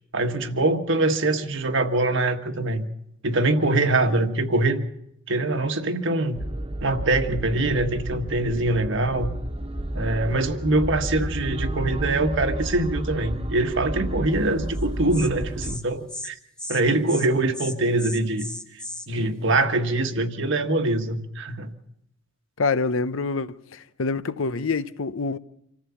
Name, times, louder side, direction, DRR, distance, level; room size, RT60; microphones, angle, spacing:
voice 1, 0.1-2.9 3.2-4.8 5.3-6.4 6.8-9.3 9.9-16.4 16.7-18.5 19.1-21.7, right 2 dB, 65° right, 1.5 m, -23 dB
sound 1, 6.4-15.8, right 1 dB, 30° right, 1.3 m, -31 dB
Insect, 14.7-14.8 15.1-15.3 15.6-15.8 16.1-16.3 16.6-16.8 17.1-17.3 17.5-19.1, left 1 dB, 5° left, 1.2 m, -35 dB
voice 2, 22.6-25.4, left 4 dB, 75° left, 0.7 m, -26 dB
26.0 x 14.5 x 7.1 m
head